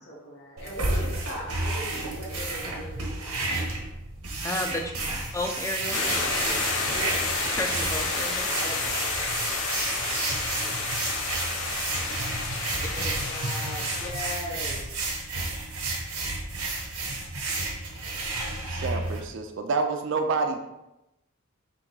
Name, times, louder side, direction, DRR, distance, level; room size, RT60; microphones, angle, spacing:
voice 1, 0.1-3.4 4.7-5.1 6.9-7.1 8.6-9.3 10.0-11.3 11.6-11.8 12.9-15.1, left 1 dB, 50° left, -5 dB, 1.2 m, -40 dB
sound 1, 0.6-19.2, right 2 dB, 90° right, 1.1 m, -32 dB
voice 2, 4.4-4.9 5.3-6.0 7.5-8.5, left 2 dB, 15° left, 4 dB, 0.3 m, -31 dB
sound 2, 5.9-14.1, left 3 dB, 70° left, 0.8 m, -30 dB
voice 3, 18.7-20.6, right 4 dB, 55° right, 5 dB, 0.4 m, -28 dB
3.6 x 2.6 x 4.6 m, 0.92 s
head